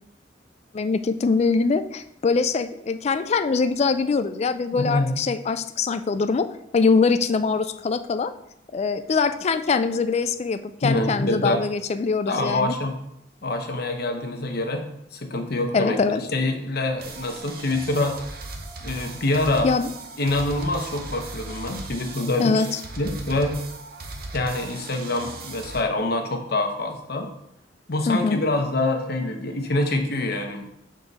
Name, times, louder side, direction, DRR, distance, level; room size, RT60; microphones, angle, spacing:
voice 1, 0.7-6.5 6.7-8.3 8.7-12.7 15.7-16.2 19.6-19.9 22.4-22.8 28.1-28.4, left 4 dB, 35° left, 11 dB, 0.3 m, -23 dB
voice 2, 4.7-5.2 10.8-11.6 12.3-13.0 13.4-14.9 15.1-18.2 18.8-19.7 20.2-22.6 23.0-23.6 24.3-27.3 27.9-30.7, left 2 dB, 60° left, 4 dB, 0.9 m, -25 dB
sound 1, 17.0-25.8, right 2 dB, 55° right, 0.7 m, -38 dB
6.8 x 3.7 x 4.0 m, 0.79 s
head